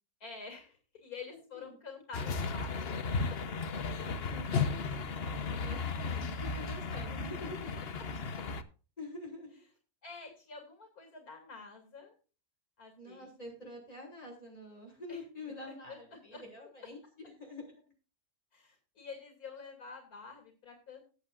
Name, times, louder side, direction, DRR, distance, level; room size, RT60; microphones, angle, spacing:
voice 1, 0.2-3.0 3.3-3.4 10.0-12.1 12.8-13.4 15.1-15.2 15.9-16.4 18.5-21.0, left 4 dB, 75° left, 4 dB, 3.0 m, -48 dB
voice 2, 1.3-1.8 4.3-7.8 9.0-9.7 13.0-17.8, left 2 dB, 25° left, -1 dB, 6.2 m, -47 dB
sound 1, 2.1-8.6, left 4 dB, 50° left, 1.0 m, -35 dB
19.0 x 7.9 x 2.5 m, 0.35 s
omnidirectional pair, 1.5 m